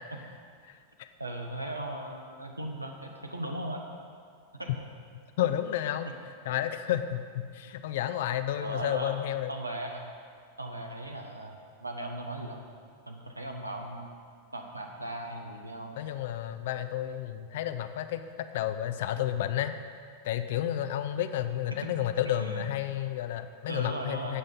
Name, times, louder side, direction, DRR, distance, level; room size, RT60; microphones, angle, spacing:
voice 1, 0.6-1.1 5.4-6.1 6.5-9.5 16.0-19.7 20.2-24.4, left 11 dB, 55° left, 10 dB, 0.5 m, -31 dB
voice 2, 1.2-3.8 4.5-4.7 5.4-5.5 8.6-10.1 10.6-12.7 13.1-14.1 14.5-16.0 21.8-21.9 22.4-22.7 23.7-24.4, right 1 dB, 85° right, 3 dB, 1.0 m, -38 dB
16.0 x 6.5 x 3.9 m, 2.2 s
figure-of-eight pair, 90°, 0 cm